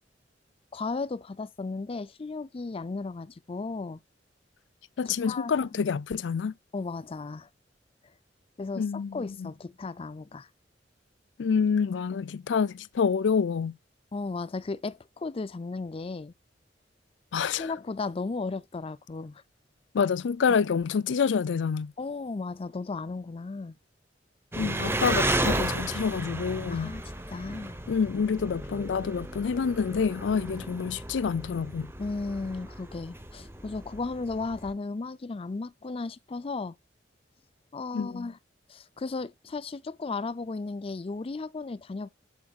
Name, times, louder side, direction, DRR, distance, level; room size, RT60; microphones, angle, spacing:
voice 1, 0.7-4.0 5.1-5.8 6.7-7.5 8.6-10.5 14.1-16.3 17.6-19.4 22.0-23.8 26.7-27.0 27.3-27.8 32.0-36.7 37.7-38.4 38.7-42.1, left 3 dB, 30° left, 0.4 m, -35 dB
voice 2, 5.0-6.5 8.8-9.5 11.4-13.8 17.3-17.7 19.9-21.9 24.6-27.0 27.9-31.9 37.9-38.3, left 6 dB, 90° left, 0.4 m, -27 dB
Engine, 24.5-34.7, right 1 dB, 15° right, 1.0 m, -33 dB
8.5 x 8.0 x 2.4 m
head